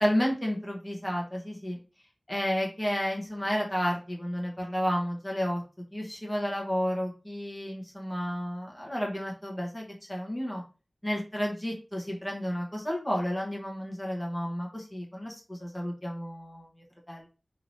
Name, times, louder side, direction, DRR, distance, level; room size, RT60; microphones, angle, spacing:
voice 1, 0.0-1.8 2.3-5.6 5.9-10.6 11.0-16.7 17.1-17.3, equal, 15° left, -2 dB, 1.1 m, -31 dB
3.1 x 2.8 x 2.6 m, 0.33 s
wide cardioid pair, 55°, 0 cm